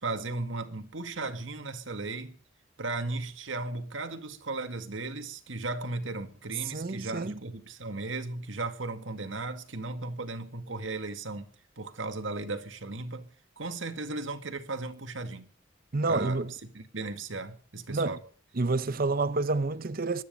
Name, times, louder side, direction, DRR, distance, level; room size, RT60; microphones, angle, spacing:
voice 1, 0.0-2.4 2.8-11.5 11.8-13.3 13.6-15.5 16.0-18.2, right 3 dB, 75° right, 1.9 m, -36 dB
voice 2, 6.7-7.4 15.9-16.5 17.9-18.2 18.6-20.2, right 3 dB, 50° right, 0.8 m, -29 dB
23.5 x 9.9 x 5.3 m
head